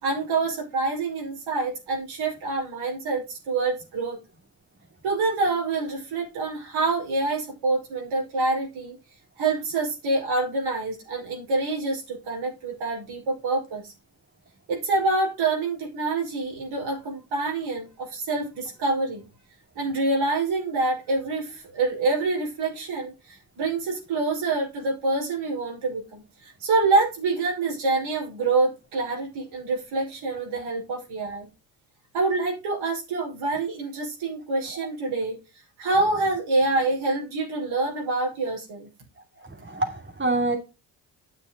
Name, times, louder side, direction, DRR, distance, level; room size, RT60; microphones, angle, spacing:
voice 1, 0.0-4.2 5.0-8.9 9.4-13.9 14.7-19.2 19.8-31.5 32.1-35.4 35.8-38.9, right 3 dB, 75° right, 5.2 m, -26 dB
voice 2, 39.4-40.6, right 2 dB, 25° right, 2.8 m, -26 dB
10.0 x 7.9 x 4.0 m
hypercardioid pair, 50°, 48 cm